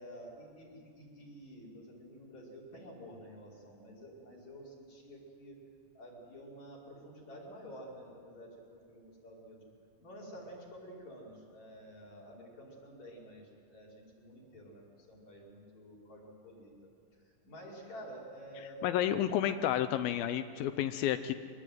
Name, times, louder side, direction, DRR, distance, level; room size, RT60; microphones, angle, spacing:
voice 1, 0.0-5.6 5.9-9.6 10.0-16.7 17.4-19.3, equal, 50° left, -3 dB, 6.4 m, -50 dB
voice 2, 18.8-21.3, left 11 dB, 80° left, 10 dB, 2.5 m, -31 dB
24.5 x 20.0 x 9.3 m, 2.2 s
omnidirectional pair, 4.2 m